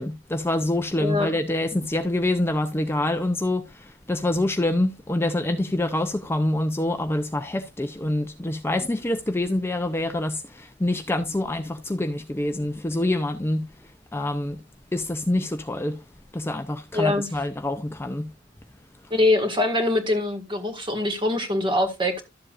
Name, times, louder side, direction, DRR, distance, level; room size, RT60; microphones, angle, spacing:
voice 1, 0.0-13.7 14.1-14.6 14.9-16.0 16.3-18.3, left 1 dB, 10° left, 0.5 m, -26 dB
voice 2, 16.9-17.3 19.1-22.2, left 2 dB, 25° right, 1.7 m, -23 dB
12.5 x 7.4 x 2.5 m
head